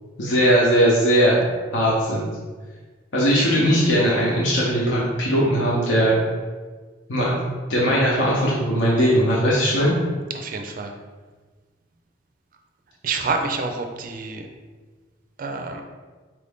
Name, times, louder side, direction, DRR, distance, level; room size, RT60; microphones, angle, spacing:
voice 1, 0.2-1.4 1.7-2.3 3.1-6.2 7.1-7.4 7.7-9.9, equal, 75° left, -6 dB, 0.7 m, -19 dB
voice 2, 10.4-10.9 13.0-14.4 15.4-15.8, right 4 dB, 45° right, 4 dB, 0.4 m, -27 dB
4.5 x 2.6 x 3.5 m, 1.4 s
head